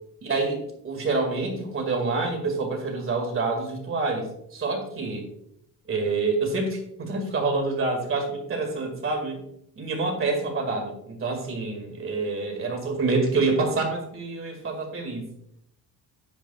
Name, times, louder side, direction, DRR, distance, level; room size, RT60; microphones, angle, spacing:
voice 1, 0.2-5.3 5.9-9.4 9.8-15.3, right 3 dB, 35° right, 3 dB, 2.1 m, -27 dB
10.5 x 8.4 x 2.4 m, 0.74 s
cardioid pair, 145°, 37 cm